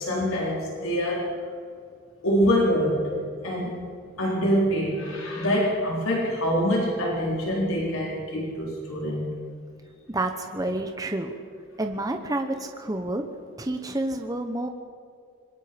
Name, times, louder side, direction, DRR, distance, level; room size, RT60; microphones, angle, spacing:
voice 1, 0.0-1.4 2.2-3.1 3.4-3.9 4.2-9.3, equal, 75° left, -3 dB, 3.9 m, -25 dB
voice 2, 10.1-11.3 11.8-13.2 13.6-14.7, right 1 dB, 15° right, 5 dB, 1.0 m, -29 dB
26.0 x 20.5 x 5.2 m, 2.3 s
head